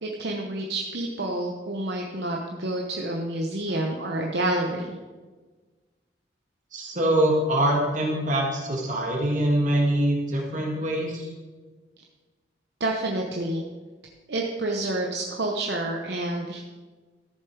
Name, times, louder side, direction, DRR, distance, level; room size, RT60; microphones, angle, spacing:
voice 1, 0.0-5.0 12.8-13.7 14.3-16.6, right 1 dB, 70° right, 0 dB, 1.0 m, -28 dB
voice 2, 6.7-11.3, right 1 dB, 45° right, -1 dB, 1.8 m, -24 dB
13.5 x 7.1 x 4.7 m, 1.3 s
head